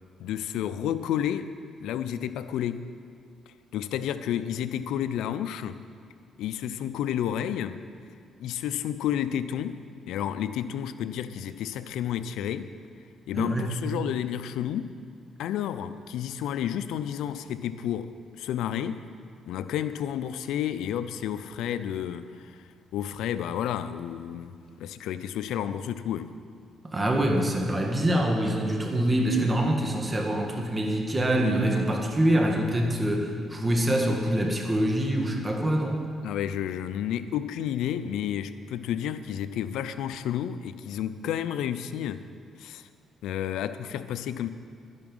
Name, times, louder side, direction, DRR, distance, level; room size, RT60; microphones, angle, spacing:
voice 1, 0.2-1.5 1.8-2.9 3.7-5.8 6.4-7.9 8.4-9.8 10.1-12.7 13.3-14.9 15.4-19.0 19.5-22.5 22.9-26.3 36.2-42.2 42.6-42.9 43.2-44.5, left 10 dB, 85° left, 12 dB, 0.5 m, -31 dB
voice 2, 13.4-13.8 26.8-36.0, right 1 dB, 20° right, 1 dB, 1.8 m, -25 dB
11.0 x 11.0 x 5.4 m, 2.1 s
cardioid pair, 90°, 0 cm